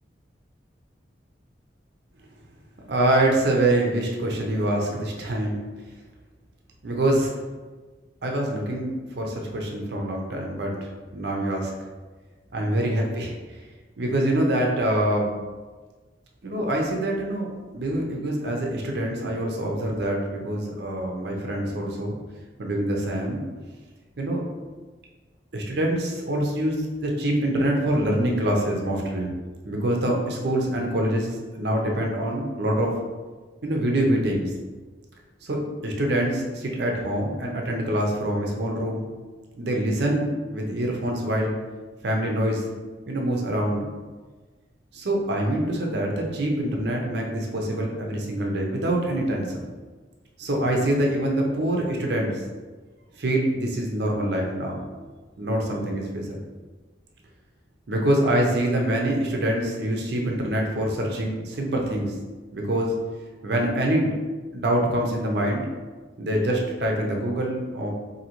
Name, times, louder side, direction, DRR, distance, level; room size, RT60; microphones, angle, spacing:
voice 1, 2.9-5.6 6.8-7.4 8.2-11.7 12.5-13.3 14.0-15.3 16.4-17.5 17.7-22.2 22.6-23.4 24.2-24.4 25.5-29.3 29.6-32.9 33.6-34.5 35.4-35.6 35.8-39.1 39.5-41.6 42.0-42.6 43.1-43.8 44.9-49.6 50.4-52.4 53.2-54.9 55.4-56.4 57.9-62.1 62.5-63.0 63.4-64.1 64.5-65.7 66.2-67.9, right 1 dB, 65° right, 0 dB, 0.6 m, -25 dB
3.9 x 2.7 x 2.9 m, 1.3 s
head